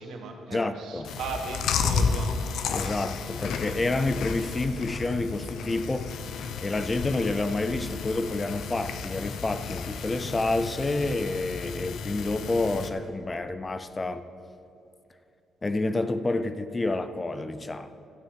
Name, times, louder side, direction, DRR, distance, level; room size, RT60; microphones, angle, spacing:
voice 1, 0.0-2.5, right 4 dB, 80° right, 3 dB, 1.7 m, -37 dB
voice 2, 0.5-1.1 2.7-6.2 6.6-14.2 15.6-17.9, left 2 dB, 25° left, 12 dB, 0.6 m, -29 dB
Chewing mastication, 1.0-12.9, left 5 dB, 75° left, 0.8 m, -32 dB
12.5 x 6.3 x 8.6 m, 2.6 s
cardioid pair, 90°, 0 cm